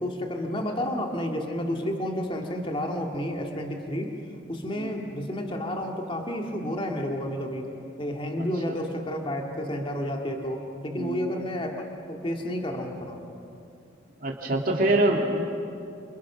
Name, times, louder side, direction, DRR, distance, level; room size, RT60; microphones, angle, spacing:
voice 1, 0.0-4.1 4.5-7.7 8.0-13.2, equal, 25° left, 2 dB, 2.3 m, -31 dB
voice 2, 10.9-11.3 14.2-15.4, right 1 dB, 45° right, 0 dB, 2.6 m, -25 dB
29.0 x 28.0 x 6.3 m, 2.6 s
head